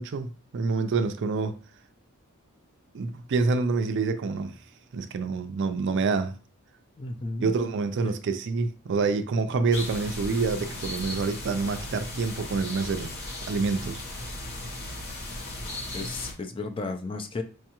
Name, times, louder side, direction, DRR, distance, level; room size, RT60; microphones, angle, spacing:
voice 1, 0.0-1.6 2.9-4.6 4.9-6.3 7.4-13.1 13.5-14.0, right 4 dB, 55° right, 0.4 m, -27 dB
voice 2, 7.0-7.5 8.0-8.1 15.9-17.4, left 3 dB, 25° left, 0.3 m, -33 dB
sound 1, 9.7-16.3, left 1 dB, 45° left, 1.0 m, -36 dB
4.6 x 2.3 x 2.9 m
head